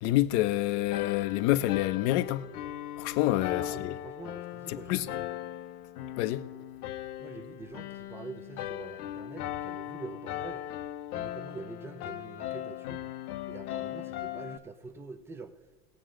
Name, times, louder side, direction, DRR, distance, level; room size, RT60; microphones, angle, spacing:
voice 1, 0.0-2.4 3.0-3.9 4.7-5.1 6.2-6.4, left 15 dB, 45° left, 0.8 m, -27 dB
sound 1, 0.9-14.6, left 12 dB, 65° left, 1.0 m, -38 dB
voice 2, 3.5-5.3 7.2-10.6 11.1-13.1 13.5-15.5, right 3 dB, 5° right, 0.4 m, -45 dB
20.0 x 7.5 x 3.8 m
supercardioid pair, 135°, 49 cm